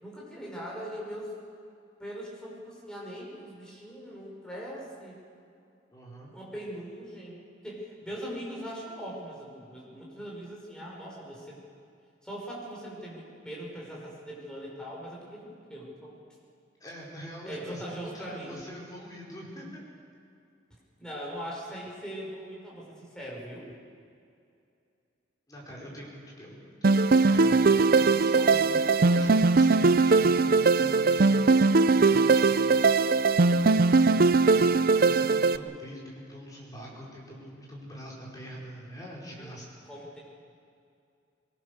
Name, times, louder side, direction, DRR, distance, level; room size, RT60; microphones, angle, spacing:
voice 1, 0.0-1.3 2.0-5.2 6.3-11.6 12.2-16.2 17.4-18.6 21.0-23.7 39.4-39.5 39.8-40.2, equal, 5° left, -5 dB, 5.9 m, -41 dB
voice 2, 5.9-6.3 16.8-19.8 25.5-31.2 31.9-32.8 33.9-34.6 35.0-39.7, equal, 20° left, -4 dB, 5.0 m, -44 dB
sound 1, 26.8-35.6, right 3 dB, 50° right, 0.5 m, -21 dB
23.5 x 22.5 x 6.7 m, 2.5 s
head